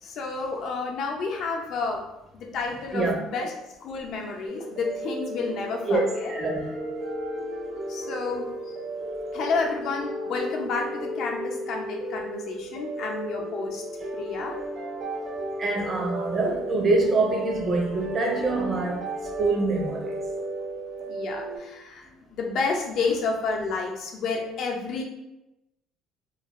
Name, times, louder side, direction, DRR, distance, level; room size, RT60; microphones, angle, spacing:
voice 1, 0.0-2.0 2.3-3.5 3.8-6.3 7.9-8.7 9.3-13.8 14.1-14.6 21.1-22.0 22.3-25.0, left 4 dB, 65° left, 0.6 m, -30 dB
sound 1, 4.5-21.6, right 1 dB, 70° right, 1.0 m, -34 dB
voice 2, 5.8-6.7 15.6-20.3, right 3 dB, 40° right, 0.7 m, -25 dB
2.4 x 2.2 x 3.0 m
supercardioid pair, 90°, 0 cm